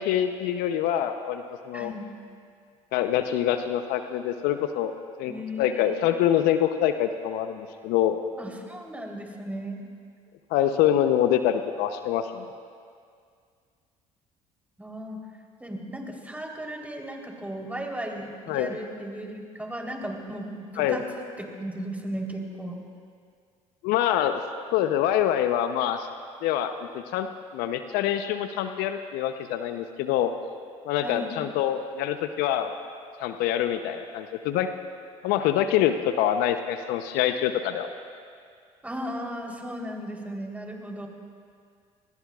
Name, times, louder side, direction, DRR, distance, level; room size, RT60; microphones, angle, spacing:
voice 1, 0.0-1.9 2.9-4.9 5.2-5.3 5.6-8.2 10.5-12.5 18.5-18.8 20.8-21.0 23.8-24.4 24.7-26.1 26.4-27.3 27.5-30.3 30.9-32.7 33.2-34.7 35.2-37.9, left 10 dB, 70° left, 8 dB, 0.8 m, -25 dB
voice 2, 1.7-2.1 5.2-6.1 8.4-9.8 14.8-15.2 15.6-22.8 31.0-31.4 38.8-41.1, equal, 10° right, 0 dB, 3.7 m, -36 dB
28.5 x 20.5 x 2.5 m, 2.2 s
hypercardioid pair, 60°, 17 cm